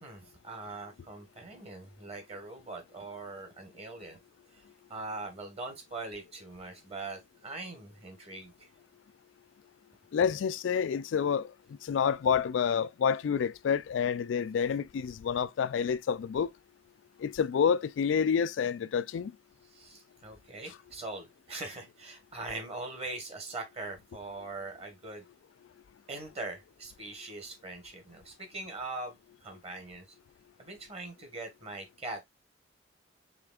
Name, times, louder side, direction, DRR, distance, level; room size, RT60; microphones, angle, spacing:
voice 1, 0.0-4.2 4.5-4.6 4.9-8.7 19.7-25.2 26.1-30.0 30.6-32.2, right 2 dB, 35° right, 1.4 m, -42 dB
voice 2, 10.1-11.5 11.8-16.5 17.2-19.3, left 7 dB, 85° left, 0.3 m, -28 dB
5.0 x 3.3 x 2.3 m
head